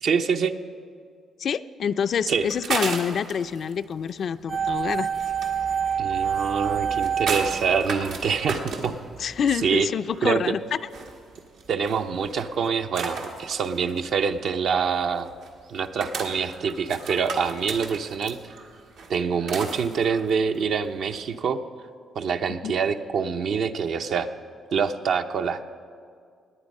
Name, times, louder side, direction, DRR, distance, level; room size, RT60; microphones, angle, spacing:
voice 1, 0.0-0.5 2.3-2.5 6.0-9.0 9.6-9.9 10.2-10.5 11.7-15.3 15.7-18.4 19.1-21.6 22.1-24.3 24.7-25.6, right 6 dB, 70° right, 7 dB, 0.7 m, -25 dB
voice 2, 1.4-5.1 9.2-10.8 22.6-22.8, left 7 dB, 60° left, 12 dB, 0.4 m, -27 dB
sound 1, 2.1-21.3, right 4 dB, 90° right, 1.6 m, -36 dB
sound 2, 4.5-8.6 8.8-8.9, right 7 dB, 25° right, 0.5 m, -27 dB
19.0 x 9.1 x 5.4 m, 2.2 s
cardioid pair, 85°, 0 cm